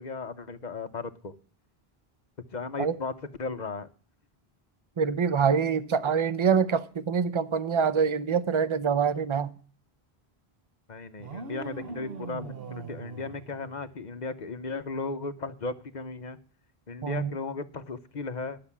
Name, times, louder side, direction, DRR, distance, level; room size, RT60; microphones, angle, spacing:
voice 1, 0.0-1.3 2.5-3.1 3.4-3.9 10.9-16.4 16.9-18.6, left 3 dB, 45° left, 0.9 m, -36 dB
voice 2, 5.0-9.5 17.0-17.3, right 6 dB, 35° right, 0.7 m, -25 dB
sound 1, 11.2-14.3, right 5 dB, 65° right, 1.2 m, -42 dB
12.0 x 6.7 x 7.1 m
omnidirectional pair, 1.1 m